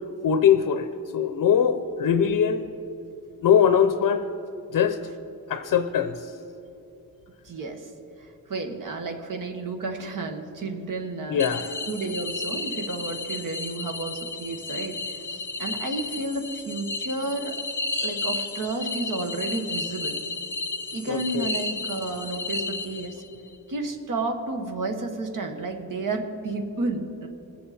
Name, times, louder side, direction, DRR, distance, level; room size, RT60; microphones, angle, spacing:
voice 1, 0.2-0.9 1.1-2.7 3.4-4.3 4.7-5.0 5.5-6.3 11.3-11.7 21.1-21.5, left 8 dB, 70° left, 8 dB, 0.7 m, -21 dB
voice 2, 7.4-7.9 8.2-11.4 11.9-17.5 18.0-20.2 20.9-23.2 23.7-27.3, right 3 dB, 60° right, 4 dB, 1.4 m, -31 dB
sound 1, 11.4-23.4, left 3 dB, 5° left, 0.9 m, -33 dB
20.0 x 7.7 x 4.2 m, 2.8 s
wide cardioid pair, 115°, 35 cm